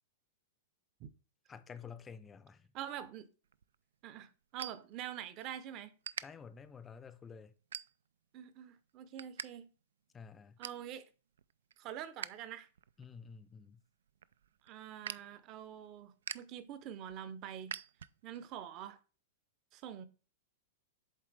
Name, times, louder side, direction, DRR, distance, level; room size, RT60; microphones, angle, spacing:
voice 1, 1.5-2.7 6.2-7.5 10.1-10.6 13.0-13.8, left 6 dB, 15° left, 0.5 m, -51 dB
voice 2, 2.7-3.3 4.0-6.0 8.3-9.7 10.6-11.1 11.8-12.7 14.6-17.7 18.2-19.0 19.7-20.0, right 10 dB, 35° right, 0.7 m, -45 dB
sound 1, 3.4-5.5 5.8-6.2 6.8-7.0 7.6-8.3 8.7-9.5 9.8-9.9 10.2-10.9 11.3-12.3 12.7-18.4, right 8 dB, 90° right, 0.3 m, -46 dB
7.5 x 3.8 x 3.4 m
hypercardioid pair, 145°, 0 cm